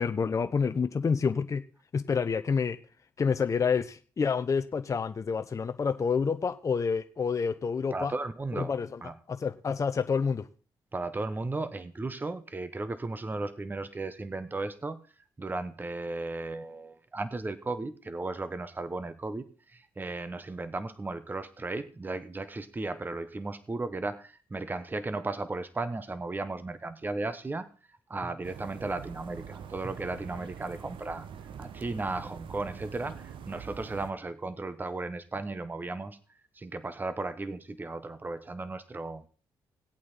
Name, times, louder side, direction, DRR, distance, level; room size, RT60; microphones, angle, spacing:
voice 1, 0.0-1.6 1.9-2.8 3.2-8.1 8.5-9.0 9.3-10.5, left 5 dB, 35° left, 0.7 m, -28 dB
voice 2, 7.9-8.7 9.0-9.1 10.9-15.0 15.4-27.7 28.1-31.3 31.6-36.2 36.6-39.2, right 2 dB, 20° right, 1.0 m, -35 dB
sound 1, 28.4-34.1, right 7 dB, 70° right, 0.9 m, -44 dB
17.0 x 8.5 x 4.1 m
cardioid pair, 90°, 9 cm